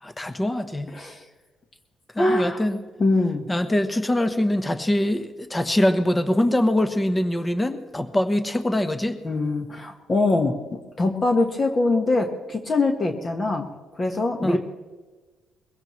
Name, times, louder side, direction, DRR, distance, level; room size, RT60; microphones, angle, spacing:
voice 1, 0.0-0.9 2.1-2.8 3.5-9.2 14.4-14.6, left 1 dB, 15° left, 9 dB, 1.0 m, -23 dB
voice 2, 0.9-1.2 2.2-2.6 3.0-3.5 9.2-10.6 11.0-13.7 14.0-14.6, left 2 dB, 35° left, 4 dB, 1.4 m, -23 dB
22.0 x 16.5 x 3.1 m, 1.3 s
cardioid pair, 90°, 0 cm